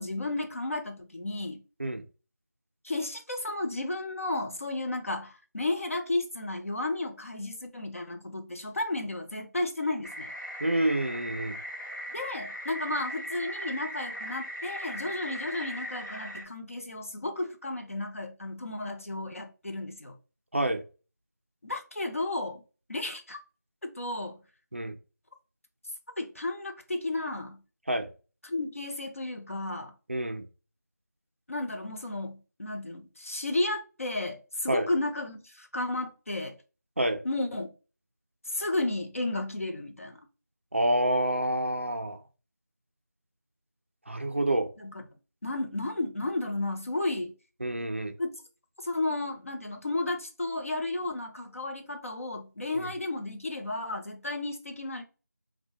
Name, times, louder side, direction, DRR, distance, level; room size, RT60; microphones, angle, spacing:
voice 1, 0.0-1.6 2.8-10.3 12.1-20.2 21.6-22.6 22.9-23.4 23.8-24.4 26.2-27.6 28.4-29.9 31.5-36.6 37.2-37.7 38.5-40.2 44.8-45.0 45.4-47.3 48.2-48.3 48.8-55.0, left 2 dB, 50° left, 0.5 m, -33 dB
sound 1, 10.0-16.4, equal, 90° left, 0.9 m, -38 dB
voice 2, 10.6-11.6 20.5-20.8 24.7-25.0 27.9-28.1 30.1-30.4 34.7-34.9 37.0-37.2 40.7-42.2 44.1-44.7 47.6-48.1 52.7-52.9, right 1 dB, 45° right, 0.4 m, -28 dB
2.5 x 2.1 x 2.8 m
figure-of-eight pair, 175°, 10 cm